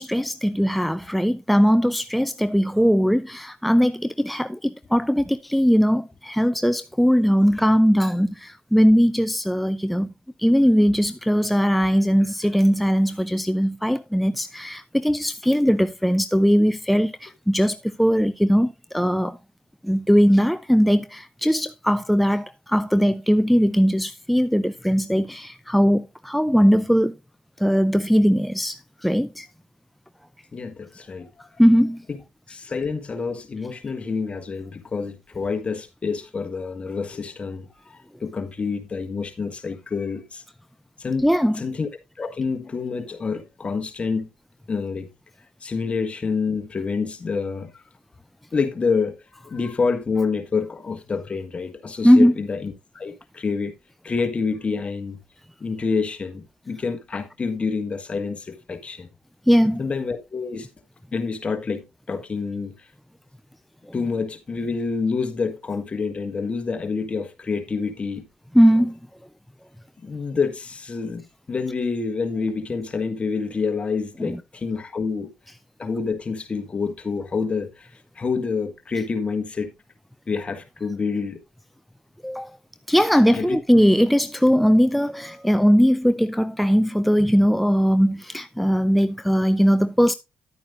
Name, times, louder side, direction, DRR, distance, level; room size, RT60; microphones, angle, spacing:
voice 1, 0.0-10.1 10.4-19.4 19.8-27.1 27.6-29.5 31.6-32.0 41.2-41.6 52.0-52.4 59.5-59.8 68.5-69.0 74.2-74.4 82.2-82.5 82.9-90.1, equal, ahead, 0.5 m, -19 dB
voice 2, 30.5-31.3 32.1-32.2 32.5-40.4 41.0-41.9 42.2-44.3 44.7-45.1 45.6-47.8 48.5-49.2 49.4-53.7 54.0-55.2 55.6-59.1 59.8-60.7 61.1-62.9 63.9-68.3 70.0-75.3 75.8-77.9 78.1-79.7 80.3-81.4 83.3-83.6, left 5 dB, 40° left, 1.5 m, -27 dB
10.5 x 8.8 x 2.5 m
supercardioid pair, 60°, 3 cm